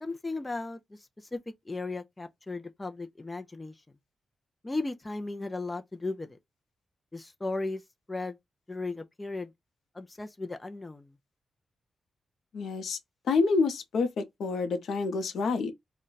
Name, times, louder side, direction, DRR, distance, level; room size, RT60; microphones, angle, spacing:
voice 1, 0.0-1.4 1.7-3.8 4.6-6.4 7.1-7.8 8.1-8.4 8.7-9.5 9.9-11.1, left 3 dB, 15° left, 0.4 m, -36 dB
voice 2, 12.5-13.0 13.3-15.7, left 4 dB, 80° left, 0.7 m, -28 dB
2.5 x 2.1 x 3.8 m
wide cardioid pair, 120°, 0 cm